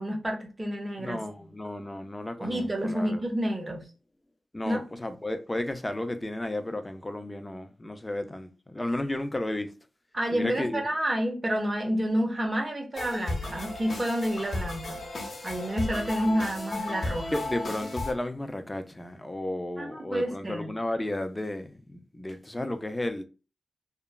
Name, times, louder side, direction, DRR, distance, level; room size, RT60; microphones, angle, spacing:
voice 1, 0.0-1.5 2.4-3.8 4.6-4.8 10.1-15.0 15.4-17.3 19.8-20.7, equal, 30° right, 0.9 m, -29 dB
voice 2, 1.0-3.2 4.5-9.7 10.3-10.8 17.3-23.2, left 1 dB, 20° left, 0.4 m, -33 dB
sound 1, 12.9-18.1, left 2 dB, 60° left, 1.0 m, -34 dB
2.9 x 2.3 x 2.2 m
cardioid pair, 55°, 0 cm